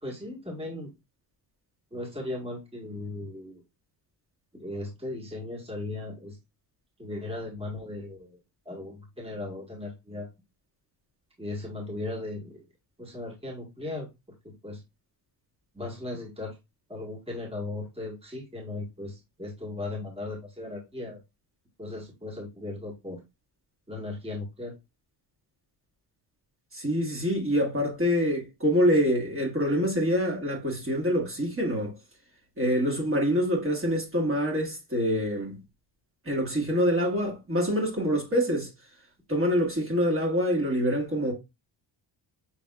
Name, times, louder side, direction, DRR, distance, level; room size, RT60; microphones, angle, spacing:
voice 1, 0.0-0.9 1.9-3.6 4.5-6.4 7.0-8.4 8.6-10.3 11.4-12.6 13.0-14.1 14.4-14.8 15.7-16.6 16.9-21.2 21.8-23.2 23.9-24.7, left 2 dB, 10° right, 1.6 m, -37 dB
voice 2, 26.7-31.9 32.6-35.6 36.2-38.7 39.3-41.3, equal, 30° right, 1.7 m, -25 dB
6.1 x 3.4 x 2.3 m
cardioid pair, 115°, 46 cm